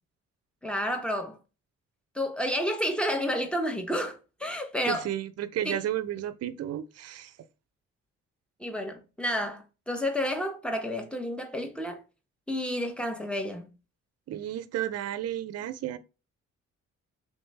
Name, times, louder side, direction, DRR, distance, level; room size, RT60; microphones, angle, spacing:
voice 1, 0.6-1.4 2.1-5.0 5.6-5.8 8.6-12.0 12.5-13.7, equal, 5° left, 0.8 m, -30 dB
voice 2, 4.9-7.3 14.3-16.0, right 12 dB, 55° right, 0.5 m, -32 dB
3.1 x 3.1 x 3.2 m
cardioid pair, 90°, 30 cm